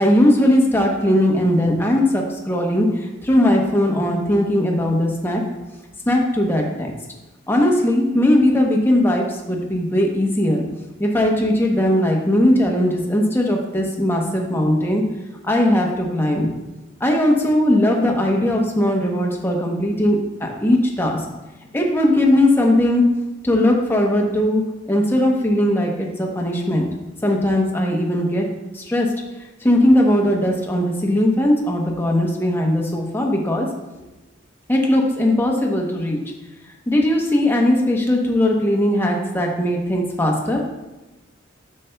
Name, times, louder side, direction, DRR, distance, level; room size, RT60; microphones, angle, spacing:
voice 1, 0.0-5.4 6.1-6.9 7.5-10.6 11.0-15.0 15.4-16.5 17.0-21.2 21.7-23.0 23.4-24.6 24.9-26.8 27.2-28.5 28.7-29.1 29.6-33.7 34.7-36.2 36.9-40.7, left 1 dB, 10° left, 0 dB, 0.8 m, -19 dB
8.2 x 6.5 x 2.2 m, 1.1 s
head